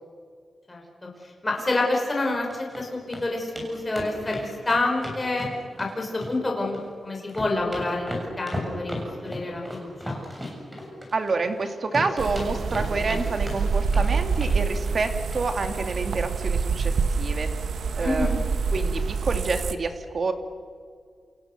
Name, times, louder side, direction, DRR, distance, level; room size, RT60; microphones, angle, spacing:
voice 1, 1.4-5.5 5.8-8.9 9.2-10.2 18.0-18.4, left 2 dB, 20° left, 0 dB, 5.7 m, -27 dB
sound 1, 2.3-2.8 3.1-3.2 3.6-3.7 3.9-5.9 6.2-6.9 7.2-11.6 11.9-13.2 13.5-14.1 14.4-14.6 14.9-15.0 15.3-15.4 15.7-15.8, left 1 dB, 15° right, 7.5 m, -35 dB
voice 2, 11.1-17.5 18.0-18.4 18.7-20.3, right 3 dB, 45° right, 6 dB, 2.5 m, -28 dB
sound 2, 12.2-19.7, right 5 dB, 85° right, 1.4 m, -26 dB
28.5 x 28.5 x 6.8 m, 2.2 s
wide cardioid pair, 140°, 0 cm